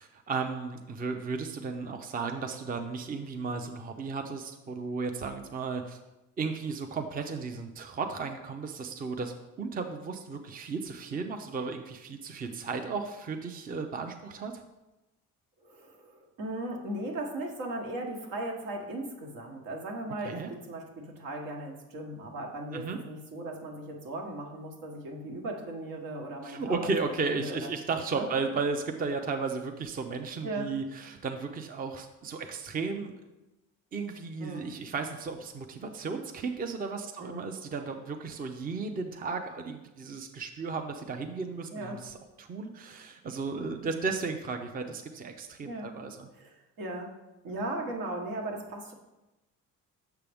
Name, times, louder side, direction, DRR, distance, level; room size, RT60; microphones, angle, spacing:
voice 1, 0.0-6.0 6.4-14.5 20.2-20.5 22.7-23.0 26.4-33.1 33.9-46.3, right 4 dB, 25° right, 5 dB, 0.5 m, -34 dB
voice 2, 15.6-26.9 27.3-28.3 30.4-30.7 34.4-34.7 37.2-37.5 41.7-42.0 45.6-45.9 46.3-47.1 47.4-48.9, right 1 dB, 75° right, 1 dB, 1.4 m, -37 dB
6.8 x 5.6 x 3.5 m, 1.0 s
cardioid pair, 100°, 34 cm